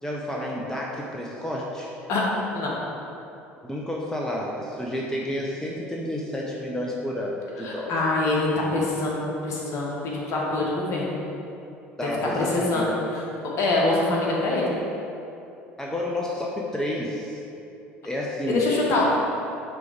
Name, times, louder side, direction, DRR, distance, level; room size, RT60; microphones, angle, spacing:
voice 1, 0.0-2.0 3.6-7.9 12.0-13.1 15.8-17.4 18.0-18.6, left 1 dB, 10° left, -3 dB, 0.8 m, -30 dB
voice 2, 7.6-11.1 12.0-12.1 12.3-12.9 13.6-14.7 18.5-19.0, left 2 dB, 45° left, -3 dB, 1.7 m, -24 dB
9.2 x 3.8 x 5.0 m, 2.8 s
figure-of-eight pair, 60°, 7 cm